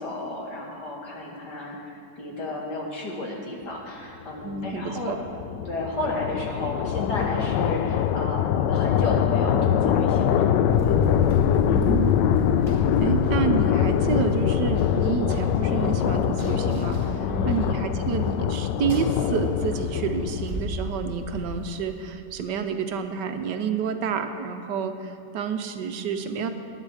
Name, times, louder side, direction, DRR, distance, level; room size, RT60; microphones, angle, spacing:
voice 1, 0.0-5.2 5.6-10.5 10.8-11.1 17.3-17.6, left 2 dB, 70° left, -2 dB, 2.6 m, -33 dB
voice 2, 4.4-5.2 11.7-12.1 13.0-26.5, right 6 dB, 80° right, 8 dB, 1.4 m, -29 dB
sound 1, 4.5-20.8, left 9 dB, 85° left, 1.2 m, -23 dB
Run, 10.7-22.0, right 2 dB, 25° right, 2.8 m, -36 dB
19.5 x 9.7 x 4.9 m, 2.6 s
omnidirectional pair, 1.9 m